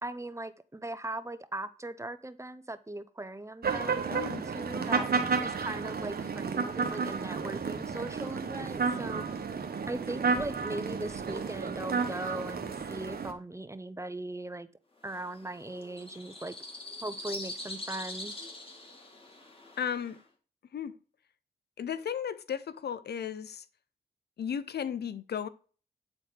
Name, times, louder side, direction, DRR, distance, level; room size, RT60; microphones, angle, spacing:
voice 1, 0.0-5.1 5.4-9.3 9.9-14.7 15.0-16.6 17.0-18.4, right 2 dB, 15° right, 0.8 m, -39 dB
sound 1, 3.6-13.3, right 5 dB, 60° right, 1.2 m, -32 dB
voice 2, 4.1-4.4 19.8-20.2 20.7-20.9 21.8-23.6 24.4-25.5, left 8 dB, 65° left, 0.6 m, -35 dB
sound 2, 15.0-20.2, left 2 dB, 30° left, 2.4 m, -43 dB
9.2 x 4.2 x 5.0 m
cardioid pair, 50°, 18 cm